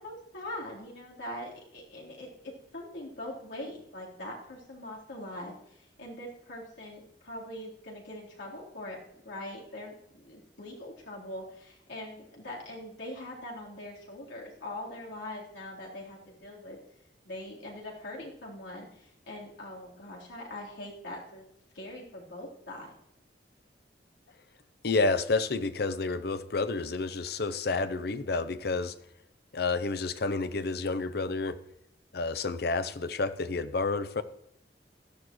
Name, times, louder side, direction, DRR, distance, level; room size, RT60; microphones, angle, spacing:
voice 1, 0.0-9.0 9.2-16.8 17.2-21.5 21.7-22.9, left 1 dB, 85° left, 3.8 m, -42 dB
voice 2, 24.8-29.0 29.5-31.6 32.1-34.2, left 3 dB, 60° left, 0.6 m, -30 dB
17.0 x 12.0 x 3.1 m
head